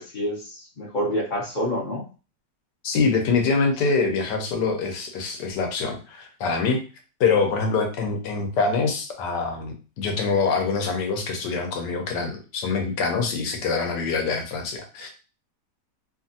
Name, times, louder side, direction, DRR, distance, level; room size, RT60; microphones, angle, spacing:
voice 1, 0.0-2.0, equal, 45° left, -4 dB, 0.6 m, -28 dB
voice 2, 2.8-6.8 7.2-15.1, left 4 dB, 75° left, 4 dB, 1.3 m, -24 dB
3.0 x 2.5 x 2.6 m, 0.34 s
omnidirectional pair, 1.9 m